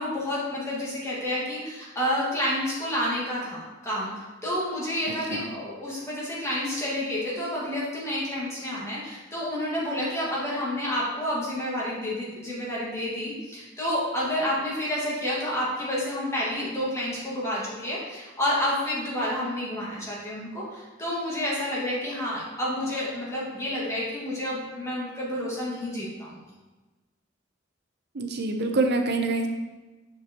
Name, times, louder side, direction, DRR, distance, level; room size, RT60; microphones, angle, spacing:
voice 1, 0.0-26.4, left 1 dB, 15° left, -6 dB, 1.9 m, -29 dB
voice 2, 5.1-5.5 28.1-29.5, right 3 dB, 55° right, 4 dB, 0.7 m, -26 dB
6.7 x 5.9 x 3.0 m, 1.2 s
head